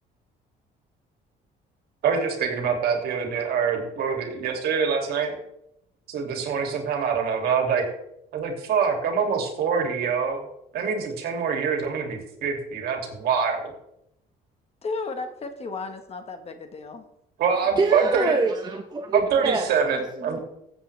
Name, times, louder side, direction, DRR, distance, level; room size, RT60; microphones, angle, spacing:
voice 1, 2.0-5.3 6.1-7.8 8.3-10.4 10.7-13.7 17.4-18.4 19.1-20.4, right 6 dB, 65° right, 2 dB, 2.7 m, -25 dB
voice 2, 14.8-17.1, left 3 dB, 35° left, 7 dB, 1.5 m, -34 dB
voice 3, 17.8-20.4, right 3 dB, 25° right, 3 dB, 1.1 m, -26 dB
15.5 x 7.9 x 3.5 m, 0.79 s
cardioid pair, 110°, 17 cm